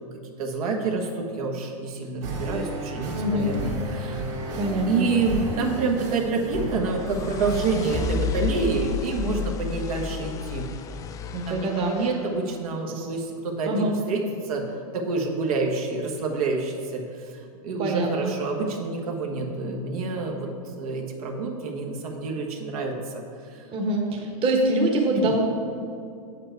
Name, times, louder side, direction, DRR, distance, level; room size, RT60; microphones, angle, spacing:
voice 1, 0.2-4.2 4.8-10.7 11.5-14.6 14.9-20.5 20.8-23.2 23.5-23.7 25.2-25.3, right 3 dB, 70° right, 1 dB, 1.3 m, -28 dB
sound 1, 2.2-8.0, right 2 dB, 50° right, 2.0 m, -33 dB
voice 2, 3.1-3.5 4.6-5.1 11.3-12.1 13.0-13.1 13.6-13.9 17.8-18.3 23.7-25.4, right 1 dB, 30° right, 1 dB, 1.3 m, -24 dB
sound 2, 6.3-12.4, left 5 dB, 15° left, 0.3 m, -32 dB
8.0 x 7.5 x 4.6 m, 2.4 s
hypercardioid pair, 130°, 20 cm